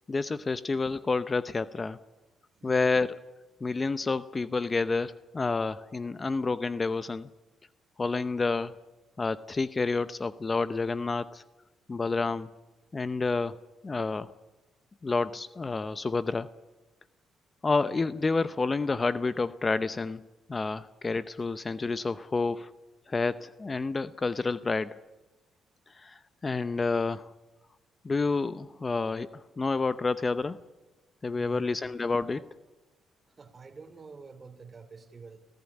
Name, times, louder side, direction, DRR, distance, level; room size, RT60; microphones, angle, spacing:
voice 1, 0.1-2.0 2.6-3.2 3.6-7.3 8.0-8.7 9.2-11.4 11.9-12.5 12.9-13.5 13.8-14.3 15.0-16.5 17.6-20.2 20.5-22.7 23.1-25.0 26.0-27.3 28.0-29.3 29.6-30.6 31.2-32.4, left 3 dB, 30° left, 14 dB, 0.7 m, -29 dB
voice 2, 2.6-3.0 31.3-31.9 32.3-32.5 33.4-35.4, right 5 dB, 35° right, 9 dB, 3.0 m, -48 dB
25.5 x 16.0 x 9.9 m, 1.1 s
cardioid pair, 90°, 0 cm